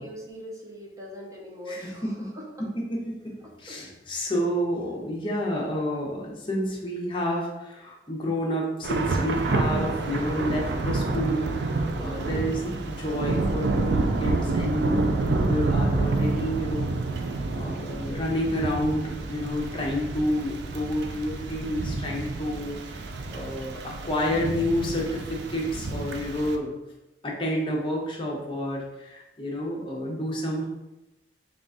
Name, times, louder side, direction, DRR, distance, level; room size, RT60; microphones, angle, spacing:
voice 1, 0.0-2.7 3.4-3.8 12.0-12.6, equal, 20° right, -2 dB, 0.6 m, -42 dB
voice 2, 1.7-2.3 2.8-16.9 17.5-26.7 27.2-30.7, equal, 30° left, -2 dB, 0.7 m, -29 dB
Thunder / Rain, 8.8-26.5, right 3 dB, 70° right, 0.4 m, -28 dB
3.8 x 2.4 x 3.7 m, 0.98 s
head